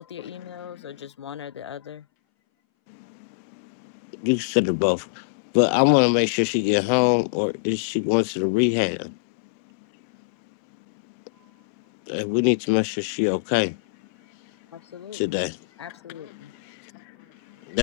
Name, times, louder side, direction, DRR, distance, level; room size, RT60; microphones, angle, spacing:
voice 1, 0.0-2.1 5.7-5.8 14.7-15.4 15.8-16.5, left 8 dB, 85° left, 1.0 m, -40 dB
voice 2, 4.1-5.2 5.5-9.1 12.1-13.8 15.1-15.6 17.7-17.8, left 33 dB, 35° left, 0.3 m, -22 dB
voice 3, 14.4-15.2 15.8-16.0 16.3-17.8, right 10 dB, 75° right, 3.6 m, -67 dB
hypercardioid pair, 130°, 14 cm